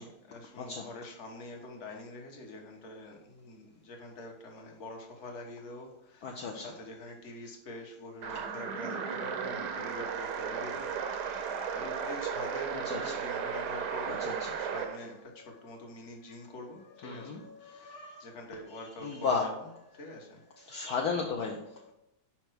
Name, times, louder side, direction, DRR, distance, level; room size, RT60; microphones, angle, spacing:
voice 1, 0.0-20.9, left 1 dB, 40° left, 1 dB, 1.2 m, -46 dB
voice 2, 0.6-0.9 6.2-6.7 9.4-10.0 10.7-10.8 11.3-11.4 12.7-13.1 13.7-14.5 17.0-18.3 19.0-19.6 20.1-20.2 20.6-21.9, left 4 dB, 65° left, 0 dB, 1.0 m, -36 dB
sound 1, 8.2-15.0, right 6 dB, 65° right, 1.0 m, -35 dB
5.3 x 4.5 x 6.1 m, 0.85 s
omnidirectional pair, 2.3 m